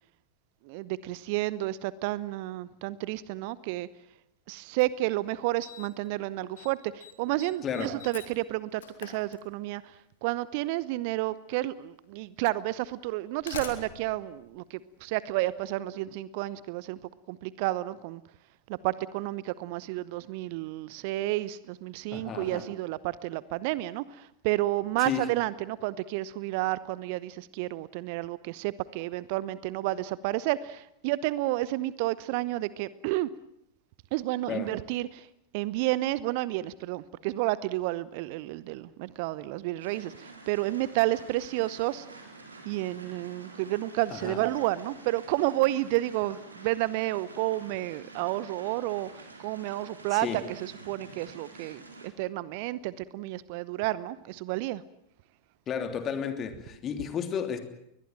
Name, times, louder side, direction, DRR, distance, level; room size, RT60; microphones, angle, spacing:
voice 1, 0.6-3.9 4.5-17.0 17.3-18.2 18.7-33.3 34.1-35.3 35.5-42.1 42.6-54.8, right 17 dB, 45° right, 19 dB, 0.8 m, -31 dB
Slam, 4.8-4.9 5.6-6.1 6.4-6.7 7.0-9.9 11.1-11.2 12.0-12.1 13.1-15.4, left 7 dB, 60° left, 3.5 m, -45 dB
voice 2, 7.6-7.9 22.1-22.7 25.0-25.3 34.5-34.7 44.1-44.4 50.1-50.4 55.7-57.6, left 7 dB, 30° left, 8 dB, 3.1 m, -33 dB
sound 1, 39.8-52.1, right 3 dB, 80° right, 4.3 m, -48 dB
22.0 x 20.5 x 9.1 m, 0.79 s
figure-of-eight pair, 90°, 0 cm